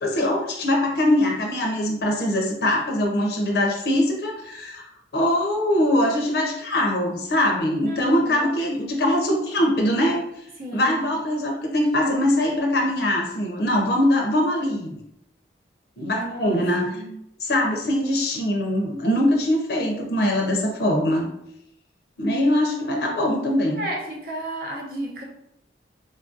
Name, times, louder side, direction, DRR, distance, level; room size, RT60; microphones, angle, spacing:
voice 1, 0.0-4.9 5.1-10.3 10.7-15.0 16.0-16.9 17.4-21.3 22.2-23.9, left 1 dB, 60° left, 1 dB, 0.5 m, -22 dB
voice 2, 7.9-8.5 10.6-11.1 16.2-16.6 16.8-17.1 22.7-23.1 23.7-25.2, right 1 dB, 55° right, -1 dB, 0.7 m, -33 dB
3.9 x 2.4 x 2.6 m, 0.80 s
head